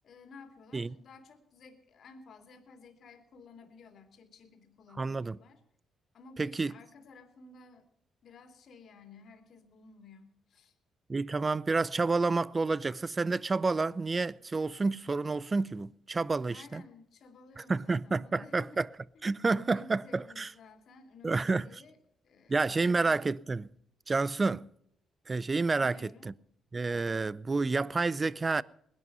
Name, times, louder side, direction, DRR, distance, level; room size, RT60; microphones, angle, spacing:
voice 1, 0.0-5.6 6.1-7.9 8.2-10.7 16.5-18.8 19.1-19.3 19.6-22.0 22.2-23.2 25.7-26.3, left 4 dB, 60° left, 2.7 m, -54 dB
voice 2, 5.0-5.4 6.4-6.7 11.1-16.8 17.6-18.9 19.2-20.5 21.2-21.7 22.5-23.7 24.1-24.7 25.3-26.3 26.7-28.6, right 3 dB, 30° right, 0.5 m, -29 dB
20.0 x 11.0 x 5.5 m
cardioid pair, 90°, 0 cm